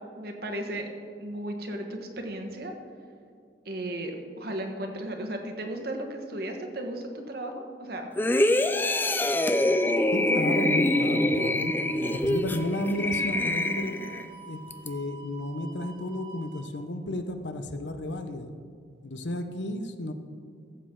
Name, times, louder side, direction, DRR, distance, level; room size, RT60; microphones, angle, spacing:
voice 1, 0.2-0.9 1.2-2.7 3.6-8.1, right 1 dB, 60° right, 3 dB, 1.3 m, -35 dB
sound 1, 8.2-14.3 14.7-14.9, left 1 dB, 10° left, 0.3 m, -25 dB
sound 2, 9.1-16.7, right 5 dB, 75° right, 2.3 m, -47 dB
voice 2, 10.1-14.0 14.5-18.5 19.0-20.1, left 1 dB, 85° left, 8 dB, 0.8 m, -32 dB
14.5 x 7.6 x 3.8 m, 2.3 s
head